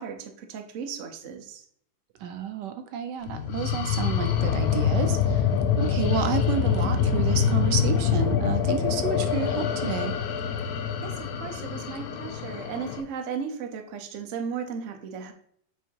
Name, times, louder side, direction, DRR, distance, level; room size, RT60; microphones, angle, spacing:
voice 1, 0.0-1.6 11.0-15.3, right 6 dB, 55° right, 5 dB, 0.9 m, -35 dB
voice 2, 2.2-5.5 5.8-10.2, right 7 dB, 75° right, 8 dB, 1.2 m, -30 dB
sound 1, 3.3-13.0, left 7 dB, 65° left, 1.0 m, -25 dB
8.0 x 2.7 x 4.5 m, 0.65 s
omnidirectional pair, 2.0 m